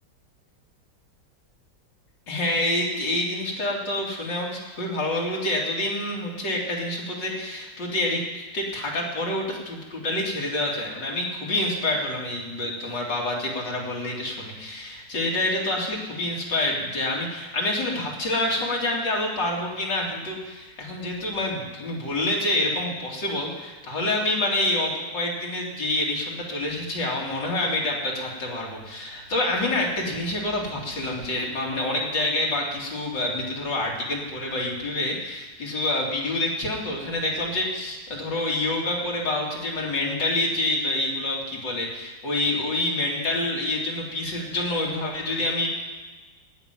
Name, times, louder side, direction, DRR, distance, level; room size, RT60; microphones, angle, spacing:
voice 1, 2.3-45.7, left 1 dB, 85° left, -2 dB, 3.3 m, -27 dB
17.0 x 5.8 x 9.1 m, 1.2 s
omnidirectional pair, 1.9 m